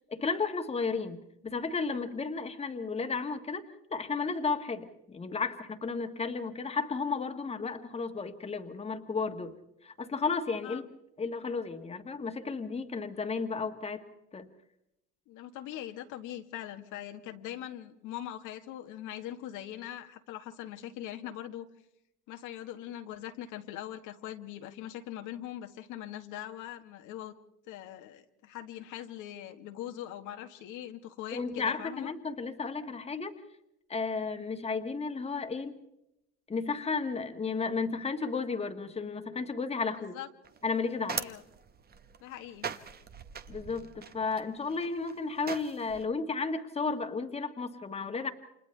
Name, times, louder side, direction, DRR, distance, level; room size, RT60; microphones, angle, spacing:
voice 1, 0.1-3.6 3.9-9.5 9.8-10.8 11.2-14.0 14.3-14.5 31.3-33.3 33.9-35.8 36.5-40.1 40.6-41.2 43.5-48.3, left 4 dB, 15° left, 7 dB, 1.6 m, -33 dB
voice 2, 15.3-21.7 22.3-27.3 27.7-32.1 40.0-40.3 41.1-41.4 42.2-42.7, left 12 dB, 60° left, 6 dB, 1.5 m, -42 dB
sound 1, 40.4-46.1, right 6 dB, 25° right, 1.2 m, -42 dB
30.0 x 26.5 x 3.3 m, 0.83 s
supercardioid pair, 100°, 35 cm